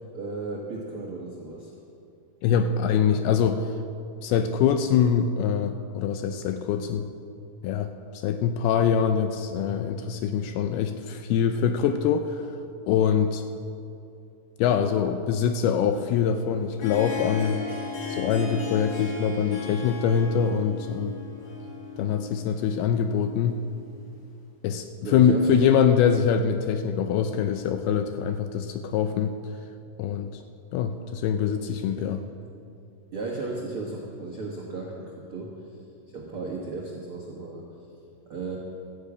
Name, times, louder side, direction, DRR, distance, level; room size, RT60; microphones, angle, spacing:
voice 1, 0.1-1.7 25.0-25.7 31.3-32.1 33.1-35.5 36.1-37.6 38.3-38.6, right 3 dB, 85° right, -2 dB, 1.2 m, -35 dB
voice 2, 2.4-3.7 4.2-7.0 7.6-12.6 12.9-13.4 14.6-17.6 18.1-21.2 22.0-23.6 24.6-29.3 30.0-30.4 30.7-32.2, left 7 dB, 80° left, 7 dB, 2.3 m, -24 dB
Harp, 16.5-24.3, left 4 dB, 50° left, 4.1 m, -36 dB
12.0 x 9.9 x 8.4 m, 2.6 s
omnidirectional pair, 4.9 m